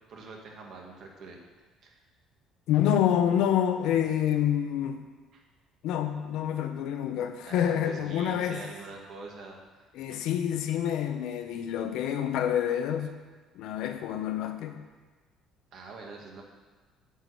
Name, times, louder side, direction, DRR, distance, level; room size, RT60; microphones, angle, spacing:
voice 1, 0.1-1.4 1.8-1.9 5.3-5.4 7.4-9.6 10.1-10.2 15.7-16.4, right 3 dB, 50° right, 0 dB, 1.7 m, -44 dB
voice 2, 2.7-5.0 5.8-8.6 9.9-13.1 13.5-14.8, left 10 dB, 70° left, 7 dB, 0.8 m, -27 dB
9.2 x 4.9 x 7.8 m, 1.3 s
cardioid pair, 150°, 0 cm